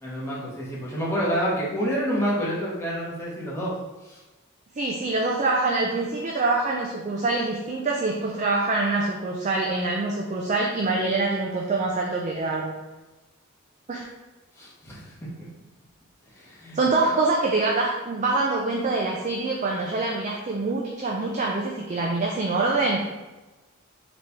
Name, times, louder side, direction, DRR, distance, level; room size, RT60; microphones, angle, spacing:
voice 1, 0.0-3.7 4.0-4.2 14.5-15.1 16.3-16.8, equal, 10° left, -7 dB, 1.1 m, -28 dB
voice 2, 4.7-12.7 13.9-14.1 16.7-23.0, right 3 dB, 35° right, -1 dB, 0.4 m, -25 dB
4.1 x 3.2 x 3.4 m, 1.1 s
head